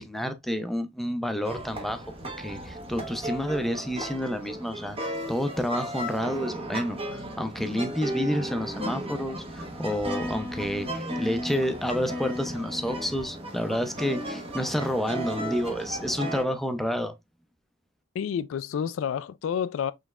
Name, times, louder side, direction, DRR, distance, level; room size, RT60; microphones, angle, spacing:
voice 1, 0.0-2.1 2.4-17.1, equal, ahead, 0.5 m, -29 dB
sound 1, 1.4-16.4, equal, 30° right, 1.0 m, -35 dB
voice 2, 18.1-19.9, left 8 dB, 75° left, 0.3 m, -29 dB
5.1 x 3.2 x 2.4 m
head